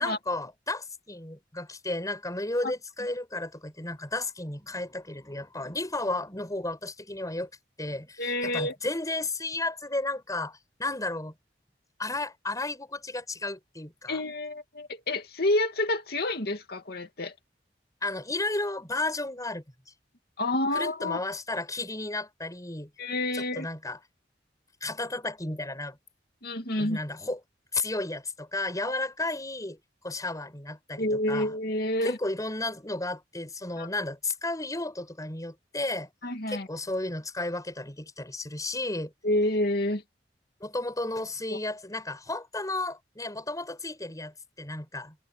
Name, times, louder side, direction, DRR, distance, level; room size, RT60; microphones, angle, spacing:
voice 1, 0.0-7.5 7.8-11.3 12.0-14.2 18.0-19.6 20.7-22.9 23.3-24.0 24.8-26.0 26.8-27.4 27.7-29.8 30.0-31.5 32.0-36.1 36.5-39.1 40.6-45.2, left 2 dB, 20° left, 6.6 m, -33 dB
voice 2, 8.2-8.7 14.1-17.3 20.4-21.2 23.0-23.7 26.4-27.0 31.0-32.2 33.8-33.9 36.2-36.7 39.2-40.0 41.5-41.6, left 1 dB, 60° left, 2.7 m, -28 dB
head